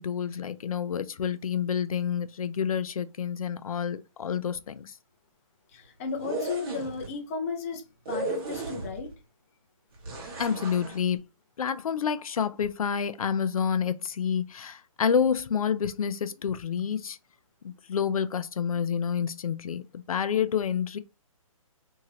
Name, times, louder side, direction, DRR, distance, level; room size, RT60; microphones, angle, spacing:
voice 1, 0.0-5.0 10.4-11.2 11.6-17.2 17.6-21.0, left 7 dB, 80° left, 0.4 m, -28 dB
voice 2, 5.7-9.1, left 5 dB, 25° left, 0.5 m, -34 dB
sound 1, 6.1-7.1 8.1-9.1 10.0-11.0, right 2 dB, 40° right, 1.2 m, -35 dB
2.8 x 2.7 x 2.9 m
hypercardioid pair, 155°, 18 cm